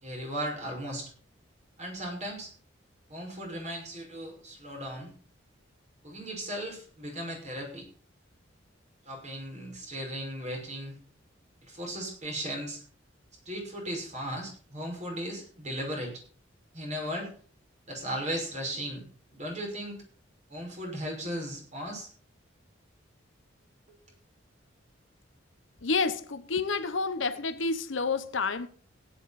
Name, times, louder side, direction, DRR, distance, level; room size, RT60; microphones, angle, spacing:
voice 1, 0.0-1.1 1.8-2.5 3.1-5.1 6.0-7.9 9.1-10.9 11.6-12.8 13.5-16.2 16.7-17.3 17.9-19.0 19.3-20.0 20.5-22.1, equal, 35° right, 5.7 m, -36 dB
voice 2, 25.8-28.7, left 4 dB, 75° left, 1.0 m, -29 dB
16.0 x 10.0 x 4.2 m
head